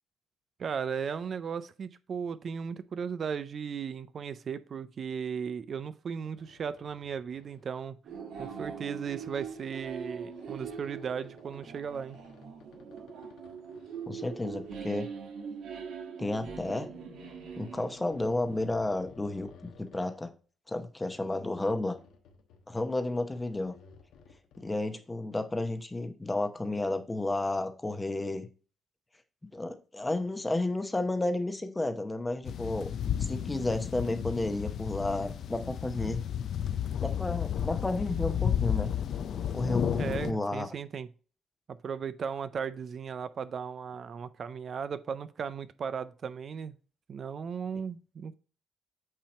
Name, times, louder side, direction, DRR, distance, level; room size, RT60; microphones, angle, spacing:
voice 1, 0.6-8.0 8.4-12.2 40.0-41.1 41.8-46.8 47.1-48.3, right 6 dB, 50° right, 0.4 m, -36 dB
sound 1, 6.3-7.8 8.2-8.5 9.0-15.7 16.6-20.2 21.0-22.7 23.0-24.6, left 5 dB, 85° left, 1.0 m, -57 dB
sound 2, 8.0-18.6, right 6 dB, 75° right, 1.2 m, -42 dB
voice 2, 14.1-15.1 16.2-16.9 17.6-20.3 20.7-22.0 22.7-23.7 24.6-28.5 29.5-32.9 33.2-36.2 37.0-38.9 39.5-40.7, left 2 dB, 15° left, 0.8 m, -32 dB
sound 3, 32.4-40.3, left 9 dB, 65° left, 0.4 m, -32 dB
8.6 x 2.9 x 4.3 m
cardioid pair, 90°, 0 cm